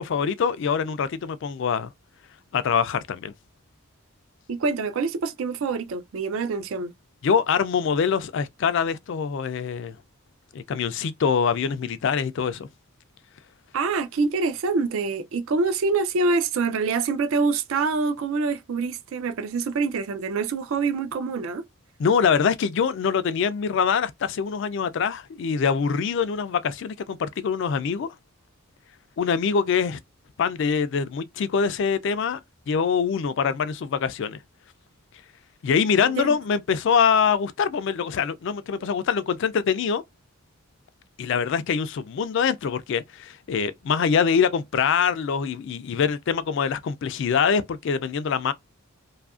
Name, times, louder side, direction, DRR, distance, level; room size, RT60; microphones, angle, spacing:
voice 1, 0.0-1.9 2.5-3.3 7.2-10.0 10.5-12.7 22.0-28.1 29.2-30.0 30.4-32.4 32.7-34.4 35.6-40.0 41.2-48.5, left 6 dB, 55° left, 0.3 m, -24 dB
voice 2, 4.5-6.9 13.7-21.6 36.0-36.3, right 4 dB, 65° right, 0.4 m, -25 dB
2.7 x 2.4 x 2.3 m
head